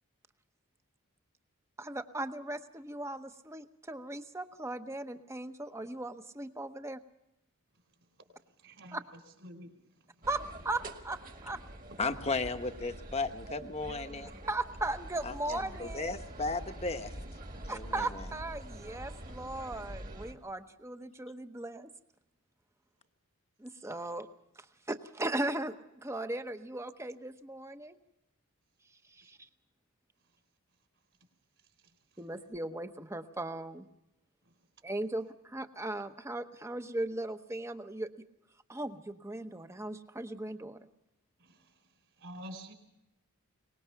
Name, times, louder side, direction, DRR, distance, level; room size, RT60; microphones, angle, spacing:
voice 1, 1.8-7.0 8.9-9.0 10.3-11.6 14.5-16.2 17.7-21.9 23.6-24.3 24.5-28.0 28.8-29.5 32.2-33.9 34.8-38.1 38.7-40.9, right 2 dB, 15° right, 9 dB, 0.9 m, -38 dB
voice 2, 8.6-9.0 9.4-9.7 29.2-29.3 41.4-41.6 42.2-42.7, equal, 55° right, 6 dB, 4.2 m, -47 dB
sound 1, 10.2-20.3, right 1 dB, 40° right, 1.8 m, -46 dB
voice 3, 12.0-14.3 15.5-17.1 17.6-17.9, left 3 dB, 30° left, 8 dB, 1.1 m, -35 dB
23.5 x 20.0 x 5.8 m, 0.89 s
head